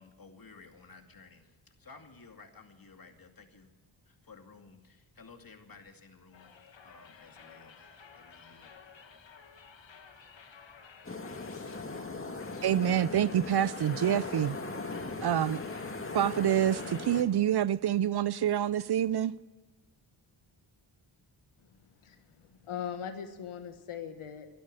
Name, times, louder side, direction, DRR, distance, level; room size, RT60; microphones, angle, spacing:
voice 1, 0.0-3.7 4.1-6.5 6.8-8.7, left 4 dB, 45° left, 2.5 m, -55 dB
sound 1, 6.3-17.0, left 6 dB, 65° left, 1.9 m, -54 dB
sound 2, 11.0-17.2, left 3 dB, 25° left, 1.9 m, -39 dB
voice 2, 12.6-14.6 15.2-15.6 16.1-19.3, right 10 dB, 55° right, 0.6 m, -27 dB
voice 3, 21.6-24.5, left 8 dB, 85° left, 1.6 m, -41 dB
13.5 x 12.0 x 9.0 m
cardioid pair, 55°, 49 cm